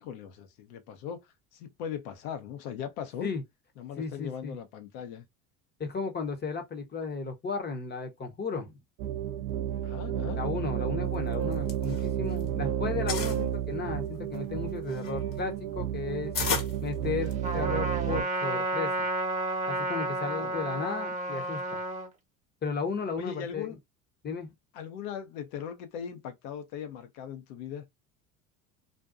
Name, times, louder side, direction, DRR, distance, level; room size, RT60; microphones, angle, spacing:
voice 1, 0.0-3.3 3.8-5.3 9.8-10.4 20.4-20.6 23.1-23.8 24.7-27.9, left 8 dB, 70° left, 0.8 m, -39 dB
voice 2, 4.0-4.6 5.8-8.7 10.4-16.3 16.8-19.1 19.7-21.8 22.6-23.7 24.2-24.5, left 4 dB, 25° left, 0.7 m, -34 dB
sound 1, 9.0-18.2, right 10 dB, 50° right, 0.5 m, -31 dB
sound 2, 11.3-12.5 12.8-13.4 14.0-17.6, left 5 dB, 55° left, 1.2 m, -34 dB
Trumpet, 17.4-22.1, right 1 dB, 15° right, 0.8 m, -31 dB
2.5 x 2.3 x 2.3 m
hypercardioid pair, 80°, 43 cm